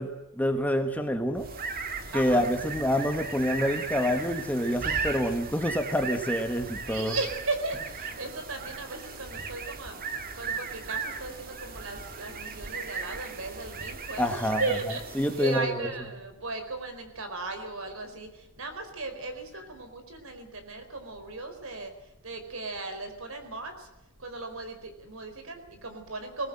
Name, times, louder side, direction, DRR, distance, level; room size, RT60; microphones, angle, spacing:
voice 1, 0.0-1.5 2.1-7.2 14.2-14.6 15.1-15.9, equal, 5° left, 5 dB, 1.4 m, -27 dB
sound 1, 1.3-15.7, right 5 dB, 40° right, 2.0 m, -37 dB
voice 2, 2.1-2.5 6.9-10.0 10.3-21.9 22.2-23.9 24.2-26.5, right 3 dB, 65° right, 7 dB, 4.5 m, -36 dB
21.5 x 18.5 x 7.8 m, 0.92 s
head